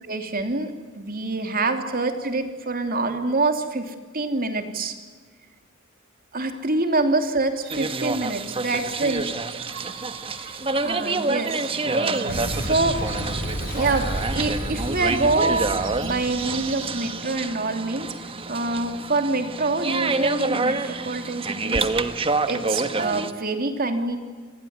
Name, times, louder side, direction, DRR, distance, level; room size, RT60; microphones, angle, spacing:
voice 1, 0.0-4.9 6.3-9.2 10.4-10.5 10.8-13.0 13.7-18.1 18.5-24.2, right 3 dB, 45° right, 6 dB, 3.1 m, -26 dB
sound 1, 7.6-17.1, right 9 dB, 65° right, 3.0 m, -42 dB
sound 2, 7.7-23.3, right 3 dB, 25° right, 1.4 m, -28 dB
Boom, 12.3-17.5, equal, 50° left, 5.6 m, -32 dB
29.5 x 20.5 x 9.7 m, 1.5 s
head